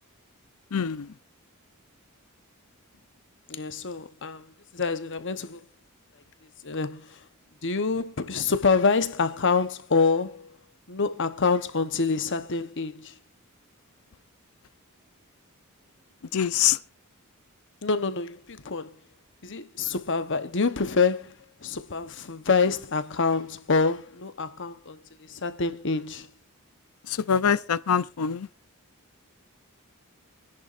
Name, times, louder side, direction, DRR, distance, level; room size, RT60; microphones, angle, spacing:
voice 1, 0.7-1.1 16.3-16.8 27.1-28.5, left 8 dB, 75° left, 0.6 m, -24 dB
voice 2, 3.5-4.5 4.7-5.6 6.6-7.2 7.6-10.5 10.9-13.1 17.8-18.9 19.4-21.3 21.6-25.0 25.3-26.3, left 4 dB, 55° left, 1.0 m, -26 dB
26.5 x 10.5 x 2.6 m
head